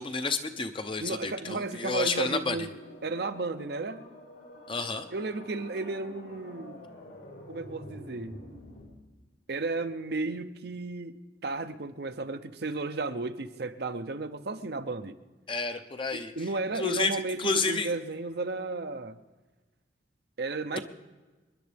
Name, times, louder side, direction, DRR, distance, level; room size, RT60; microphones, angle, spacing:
voice 1, 0.0-2.6 4.7-5.1 15.5-16.3 16.7-17.9, left 3 dB, 30° left, 0.7 m, -30 dB
voice 2, 1.0-2.8 3.0-4.1 5.1-6.9 7.5-8.4 9.5-11.1 11.4-15.2 16.1-19.2 20.4-20.8, right 3 dB, 60° right, 0.7 m, -33 dB
sound 1, 2.3-8.8, left 1 dB, 85° left, 4.5 m, -48 dB
27.0 x 10.5 x 3.5 m
head